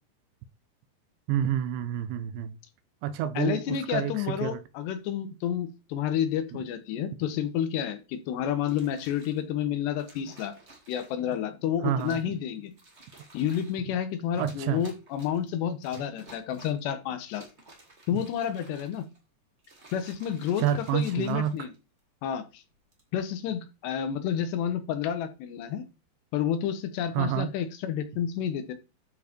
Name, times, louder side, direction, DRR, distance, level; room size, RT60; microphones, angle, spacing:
voice 1, 1.3-2.6 3.0-4.6 6.5-6.6 11.8-12.4 14.4-14.9 18.1-18.2 20.6-21.7 27.1-27.5, right 10 dB, 85° right, 3.1 m, -29 dB
voice 2, 3.4-10.5 10.9-12.7 13.3-17.4 18.1-19.1 19.9-21.7 22.2-22.6 23.1-25.8 26.3-28.7, left 9 dB, 75° left, 3.1 m, -30 dB
sound 1, 8.7-9.4 10.0-11.3 12.0-12.4 12.7-13.8 14.3-15.5 15.8-16.9 17.3-19.2 19.6-22.0 22.7-23.1, right 2 dB, 30° right, 1.3 m, -53 dB
12.0 x 4.7 x 4.5 m
omnidirectional pair, 5.1 m